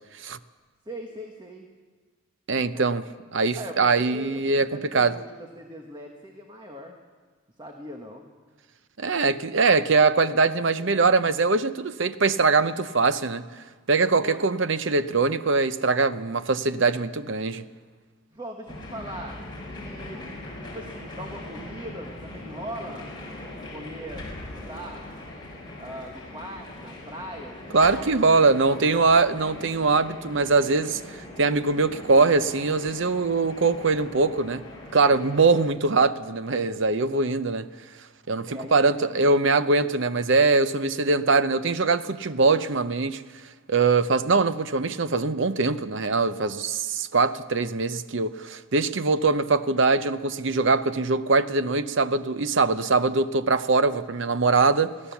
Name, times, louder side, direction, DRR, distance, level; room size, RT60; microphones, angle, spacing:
voice 1, 0.8-1.7 2.7-2.9 3.6-7.0 7.6-8.3 14.1-14.4 18.3-19.4 19.7-20.2 20.6-23.1 23.7-25.1 25.8-29.1 38.4-39.4, equal, 20° right, 2 dB, 1.3 m, -40 dB
voice 2, 2.5-3.0 3.3-5.1 9.0-13.4 13.9-17.6 27.7-34.6 34.9-37.7 38.3-43.2 43.7-54.9, right 4 dB, 55° right, 12 dB, 0.7 m, -22 dB
sound 1, 18.7-35.6, left 1 dB, 20° left, 4.5 m, -41 dB
23.0 x 16.0 x 7.1 m, 1.5 s
head